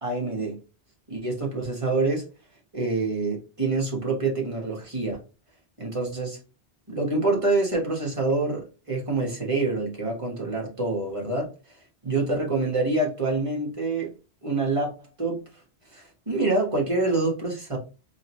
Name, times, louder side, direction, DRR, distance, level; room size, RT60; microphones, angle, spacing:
voice 1, 0.0-0.6 1.1-2.2 2.7-5.2 5.8-6.4 6.9-11.5 12.0-14.1 14.4-14.9 15.2-15.4 15.9-17.8, right 3 dB, 30° right, -2 dB, 1.4 m, -26 dB
3.7 x 3.5 x 3.0 m, 0.31 s
omnidirectional pair, 1.1 m